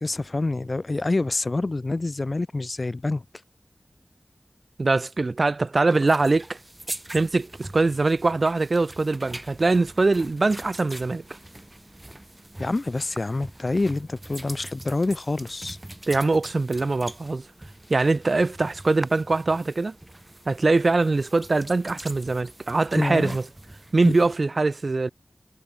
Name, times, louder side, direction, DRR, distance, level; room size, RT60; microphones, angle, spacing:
voice 1, 0.0-3.2 12.6-15.8 23.0-23.4 24.0-24.1, left 2 dB, 55° left, 0.3 m, -27 dB
voice 2, 4.8-6.6 7.1-11.2 16.1-17.5 17.9-19.9 20.5-23.5 23.9-25.1, right 3 dB, 65° right, 0.3 m, -22 dB
sound 1, 5.9-24.4, right 1 dB, 25° right, 1.0 m, -43 dB
wide cardioid pair, 50°, 0 cm